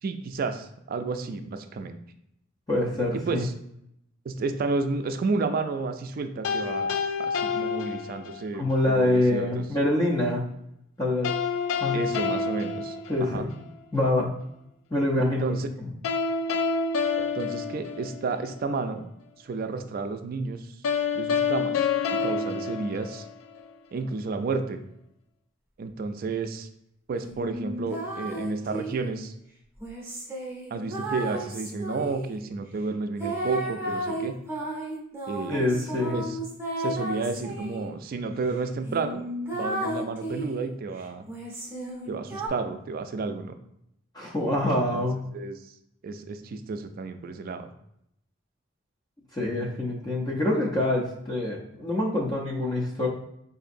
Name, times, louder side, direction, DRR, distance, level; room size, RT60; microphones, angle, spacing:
voice 1, 0.0-2.0 3.1-3.5 4.2-6.9 7.2-9.6 11.9-13.5 15.2-15.7 17.2-19.1 19.4-20.8 21.2-23.3 23.9-24.8 25.8-26.7 27.1-29.3 30.7-34.4 35.3-35.6 36.1-36.4 36.8-39.2 39.5-41.3 42.1-43.5 44.6-45.1 45.3-45.7 46.0-47.7, right 3 dB, 45° right, 8 dB, 0.3 m, -31 dB
voice 2, 2.7-3.4 8.5-10.5 11.0-11.3 11.8-12.0 13.1-13.5 13.9-14.3 14.9-15.9 35.5-36.2 44.1-45.2 49.3-53.1, left 1 dB, 20° left, -3 dB, 0.5 m, -25 dB
sound 1, 6.4-8.6 11.2-13.7 16.0-18.6 20.8-23.7, left 5 dB, 85° left, 0.4 m, -28 dB
sound 2, 27.3-29.1 29.8-32.3 33.2-37.9 38.4-38.5 38.9-40.6 41.3-42.5, right 1 dB, 15° right, 0.7 m, -33 dB
4.9 x 2.6 x 2.5 m, 0.77 s
head